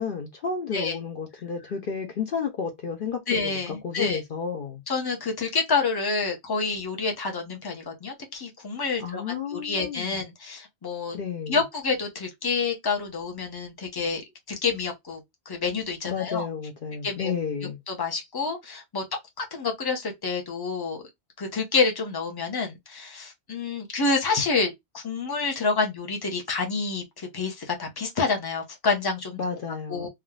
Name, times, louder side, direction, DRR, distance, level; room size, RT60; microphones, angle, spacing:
voice 1, 0.0-4.8 9.0-10.2 11.1-11.6 16.0-17.8 29.4-30.1, left 6 dB, 60° left, 0.8 m, -32 dB
voice 2, 3.3-4.2 4.9-9.2 9.5-11.2 11.5-14.2 14.5-15.2 15.5-16.5 17.0-17.3 17.9-19.0 19.4-21.0 21.4-29.4 29.9-30.1, left 4 dB, 25° left, 0.8 m, -28 dB
3.5 x 2.3 x 2.3 m
omnidirectional pair, 1.1 m